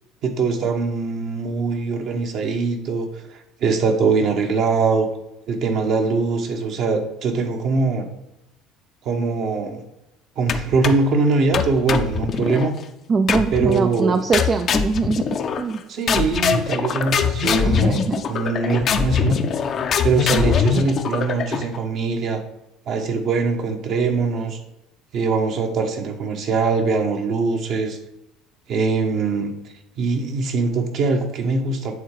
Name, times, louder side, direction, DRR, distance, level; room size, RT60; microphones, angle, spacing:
voice 1, 0.2-5.1 5.5-8.1 9.0-9.8 10.4-12.7 13.5-14.3 15.9-19.4 20.0-22.4 22.9-24.6 25.1-28.0 28.7-29.5 30.0-31.9, right 4 dB, 60° right, 4 dB, 1.2 m, -22 dB
sound 1, 10.5-11.1 11.5-12.7 13.3-13.8 14.3-15.8 16.1-21.8, left 7 dB, 45° left, 0.6 m, -22 dB
voice 2, 13.1-15.3 15.6-15.8 17.6-18.2, right 4 dB, 35° right, 7 dB, 0.4 m, -22 dB
8.7 x 3.7 x 4.8 m, 0.88 s
hypercardioid pair, 70°, 0 cm